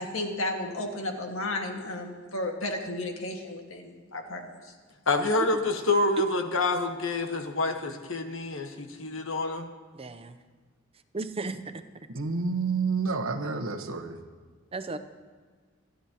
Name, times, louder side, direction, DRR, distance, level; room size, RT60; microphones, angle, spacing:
voice 1, 0.0-4.7, left 1 dB, 90° left, 3 dB, 1.8 m, -33 dB
voice 2, 5.1-9.7, left 2 dB, 70° left, 6 dB, 1.2 m, -27 dB
voice 3, 9.9-10.4 11.1-11.8 14.7-15.0, right 3 dB, 30° right, 10 dB, 0.6 m, -35 dB
voice 4, 12.1-14.2, right 4 dB, 85° right, 7 dB, 1.1 m, -29 dB
27.5 x 10.0 x 2.9 m, 1.5 s
head